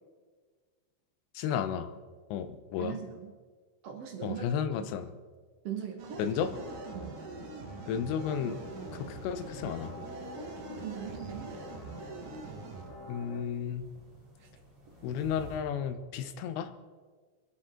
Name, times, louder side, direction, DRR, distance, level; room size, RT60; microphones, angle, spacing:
voice 1, 1.3-1.9 2.3-3.0 4.2-5.1 6.2-6.5 7.9-8.6 9.0-9.9 13.1-13.9 15.0-16.7, left 8 dB, 80° left, 10 dB, 3.0 m, -33 dB
voice 2, 2.8-3.3 3.8-4.4 5.6-6.2 6.9-7.1 10.3-11.5 14.4-14.5, right 9 dB, 90° right, 1 dB, 1.3 m, -40 dB
sound 1, 6.0-12.9, right 5 dB, 60° right, 2.3 m, -45 dB
sound 2, 6.4-13.4, left 2 dB, 55° left, 2.8 m, -47 dB
sound 3, 8.2-15.6, right 1 dB, 20° right, 5.6 m, -55 dB
24.0 x 9.9 x 3.8 m, 1.5 s
omnidirectional pair, 5.1 m